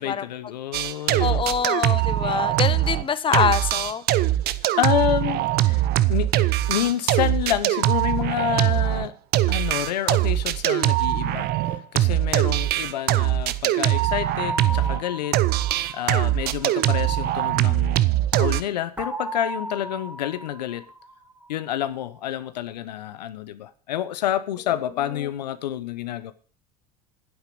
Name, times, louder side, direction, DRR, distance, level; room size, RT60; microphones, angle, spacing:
voice 1, 0.0-1.4 4.8-5.8 6.1-9.1 9.5-15.4 15.9-18.1 18.3-20.9 21.5-26.3, left 12 dB, 85° left, 1.0 m, -28 dB
sound 1, 0.7-3.1 3.3-15.0 15.3-18.6, right 15 dB, 50° right, 0.8 m, -22 dB
voice 2, 1.2-4.0, left 7 dB, 25° left, 0.9 m, -24 dB
sound 2, 14.4-17.3 19.0-21.8, right 1 dB, 5° right, 2.8 m, -36 dB
9.9 x 8.4 x 6.7 m
hypercardioid pair, 85°, 21 cm